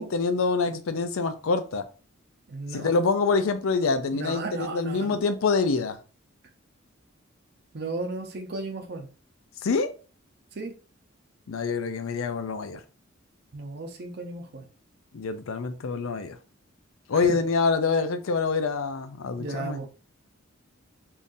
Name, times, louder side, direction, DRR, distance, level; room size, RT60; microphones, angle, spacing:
voice 1, 0.0-1.9 2.7-6.0 9.6-9.9 11.5-12.8 15.1-16.4 17.1-19.8, left 4 dB, 80° left, 0.5 m, -26 dB
voice 2, 2.5-2.9 4.1-5.1 7.7-9.1 10.5-10.7 13.5-14.7 17.1-17.4 19.4-19.9, right 3 dB, 55° right, 0.7 m, -35 dB
3.7 x 2.6 x 2.6 m
head